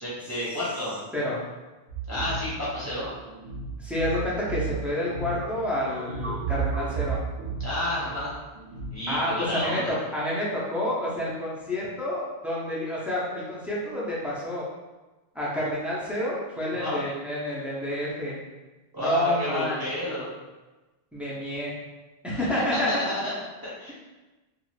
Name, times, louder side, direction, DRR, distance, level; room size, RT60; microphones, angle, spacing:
voice 1, 0.0-0.9 2.1-3.1 7.6-8.3 8.9-9.9 16.7-17.0 18.9-20.3 22.3-22.4 22.7-23.3 23.6-23.9, left 1 dB, 25° right, -10 dB, 0.8 m, -30 dB
sound 1, 1.9-8.9, right 5 dB, 55° right, 1.0 m, -33 dB
voice 2, 3.8-7.2 9.1-14.6 15.3-18.4 19.0-19.8 21.1-21.7 22.2-22.9, left 1 dB, ahead, -7 dB, 0.5 m, -29 dB
2.5 x 2.4 x 3.1 m, 1.2 s
omnidirectional pair, 1.1 m